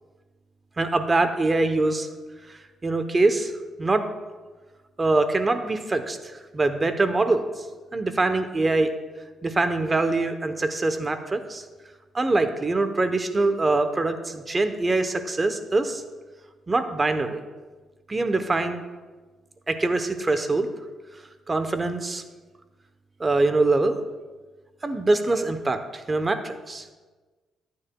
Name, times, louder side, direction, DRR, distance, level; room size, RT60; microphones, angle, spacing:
voice 1, 0.8-2.1 2.5-3.5 3.8-4.1 5.0-6.2 6.5-7.6 7.9-8.9 9.4-11.6 12.1-16.0 16.7-17.4 18.1-18.8 19.7-20.7 21.5-22.2 23.2-24.0 24.8-26.9, right 2 dB, 25° right, 8 dB, 0.8 m, -23 dB
14.0 x 9.5 x 2.3 m, 1.3 s
cardioid pair, 90°, 0 cm